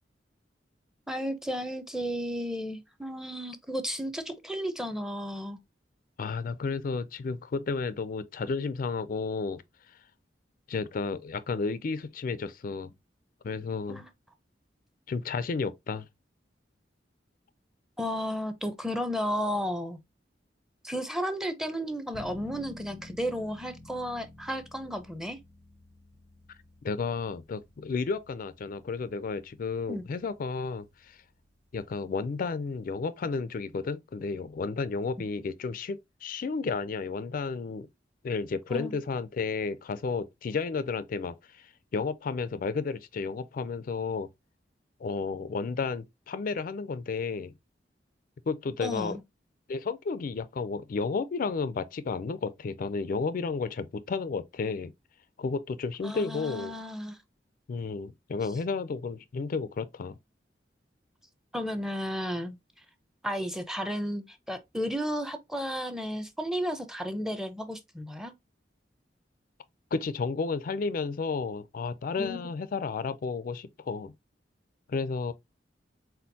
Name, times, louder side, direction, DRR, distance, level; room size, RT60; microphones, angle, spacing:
voice 1, 1.1-5.6 13.9-14.1 18.0-20.0 20.8-25.4 29.9-30.0 38.7-39.0 48.8-49.2 56.0-57.2 61.5-62.6 63.2-68.3 72.2-72.4, equal, 5° right, 0.6 m, -33 dB
voice 2, 6.2-9.6 9.9-10.0 10.7-12.9 13.4-14.0 15.1-16.0 26.8-31.2 31.7-37.9 38.2-44.3 45.0-47.5 48.5-49.2 49.7-54.9 55.4-56.7 57.7-60.1 69.9-74.1 74.9-75.3, left 4 dB, 50° left, 0.4 m, -32 dB
sound 1, 22.1-32.9, left 1 dB, 65° right, 1.0 m, -52 dB
4.3 x 3.9 x 2.6 m
head